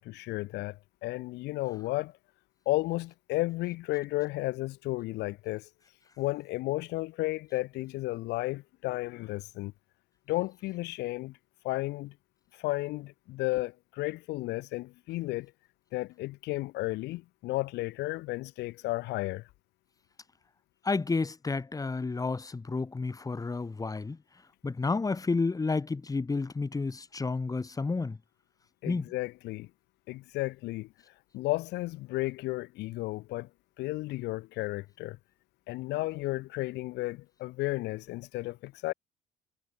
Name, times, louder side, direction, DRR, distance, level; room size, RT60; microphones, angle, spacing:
voice 1, 0.0-2.1 2.7-5.7 6.2-9.7 10.3-11.4 11.6-12.1 12.5-15.5 15.9-19.5 28.8-29.7 30.1-30.9 31.3-33.5 33.8-35.2 35.7-38.9, left 19 dB, 85° left, 2.8 m, -33 dB
voice 2, 20.8-24.2 24.6-28.2 28.9-29.1, left 3 dB, 20° left, 4.0 m, -31 dB
cardioid pair, 110°, 17 cm